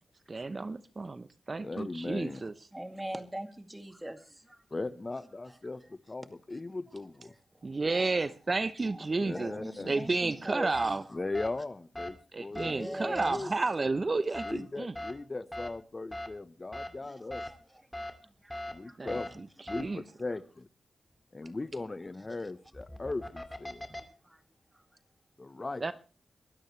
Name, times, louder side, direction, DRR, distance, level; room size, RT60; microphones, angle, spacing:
voice 1, 0.3-2.5 7.6-9.5 9.8-11.0 12.3-14.9 19.0-19.1 19.8-20.0 25.8-25.9, right 3 dB, 45° right, 0.8 m, -31 dB
voice 2, 1.6-2.4 4.7-7.3 9.2-10.0 11.1-13.6 14.4-17.5 18.7-20.7 21.3-23.9 25.4-25.8, left 2 dB, 35° left, 1.0 m, -38 dB
voice 3, 2.7-4.6 7.9-8.1 8.8-11.1 12.5-13.5 17.0-17.6 18.0-18.1 18.4-19.0 21.4-21.6 23.9-24.4 24.7-24.8, right 1 dB, 15° right, 2.3 m, -42 dB
sound 1, 10.7-10.9 11.3-11.5 11.9-12.1 12.5-12.7 13.2-13.3 14.3-14.5 14.9-15.1 15.5-15.7 16.1-16.3 16.7-16.9 17.3-17.5 17.9-18.1 18.5-18.7 19.1-19.3 19.7-19.8 22.7-24.0, left 1 dB, 15° left, 2.7 m, -38 dB
23.0 x 13.0 x 3.3 m
cardioid pair, 45°, 0 cm